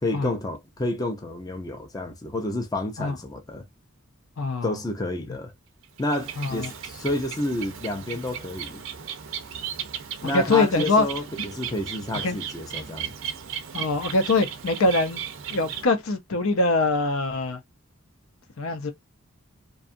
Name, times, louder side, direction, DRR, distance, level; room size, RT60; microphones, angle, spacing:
voice 1, 0.0-3.6 4.6-5.5 6.0-8.8 10.2-13.1, left 1 dB, 15° left, 0.5 m, -30 dB
voice 2, 4.4-4.7 6.4-6.7 10.2-11.1 12.2-12.4 13.7-15.2 15.5-17.6 18.6-18.9, left 3 dB, 75° left, 0.6 m, -23 dB
Bird, 5.8-15.9, right 8 dB, 65° right, 0.5 m, -36 dB
2.6 x 2.3 x 2.5 m
head